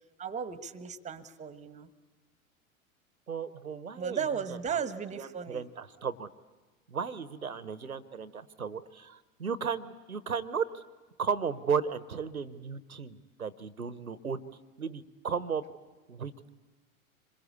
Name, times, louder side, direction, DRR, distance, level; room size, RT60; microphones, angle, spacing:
voice 1, 0.2-1.9 4.0-5.6, right 7 dB, 15° right, 14 dB, 1.2 m, -35 dB
voice 2, 3.3-4.8 5.1-6.3 6.9-10.8 11.2-14.4 14.8-15.6 16.1-16.3, right 6 dB, 85° right, 17 dB, 1.0 m, -35 dB
26.5 x 22.0 x 8.3 m, 1.3 s
figure-of-eight pair, 90°, 41 cm